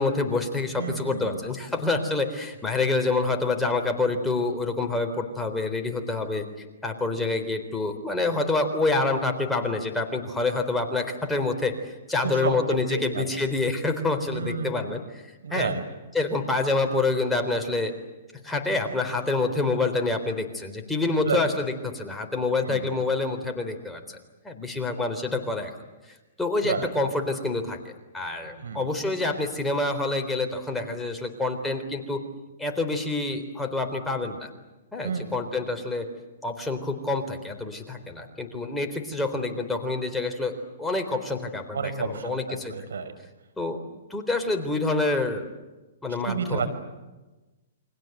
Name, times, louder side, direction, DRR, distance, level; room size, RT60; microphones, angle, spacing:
voice 1, 0.0-6.5 6.8-15.2 15.5-15.7 16.1-17.9 18.4-24.2 24.4-25.7 26.4-32.2 32.6-34.5 34.9-36.1 36.4-42.7 43.6-43.8 44.1-45.4 46.0-46.7, left 3 dB, 5° left, 3 dB, 3.8 m, -27 dB
voice 2, 0.8-1.4 12.2-13.3 14.3-14.9 15.4-15.8 21.2-21.4 22.6-22.9 26.6-26.9 28.6-28.9 35.0-35.3 41.7-43.1 46.2-46.7, right 5 dB, 80° right, 11 dB, 5.3 m, -30 dB
29.5 x 24.5 x 8.0 m, 1.1 s
hypercardioid pair, 135°, 0 cm